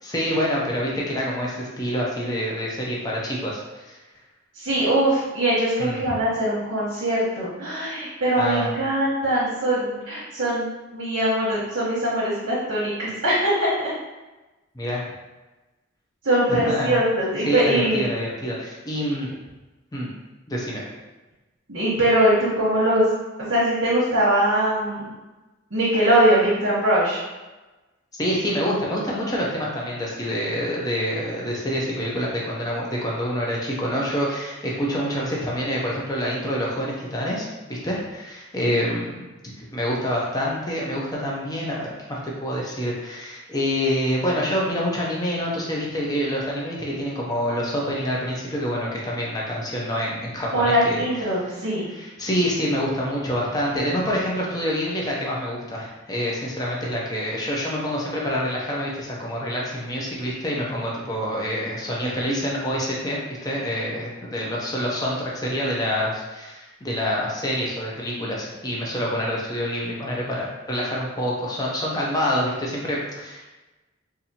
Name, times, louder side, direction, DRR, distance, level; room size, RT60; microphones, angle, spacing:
voice 1, 0.0-4.0 5.8-6.0 8.4-8.7 14.7-15.0 16.5-17.0 17.4-19.3 19.9-20.1 20.5-20.8 28.1-39.2 39.6-51.0 51.9-73.5, equal, 20° left, -4 dB, 0.6 m, -26 dB
voice 2, 4.5-13.9 16.2-18.0 21.7-23.1 23.4-25.1 25.7-27.2 50.5-51.9, right 1 dB, 65° right, -9 dB, 1.1 m, -22 dB
4.1 x 2.6 x 2.8 m, 1.1 s
head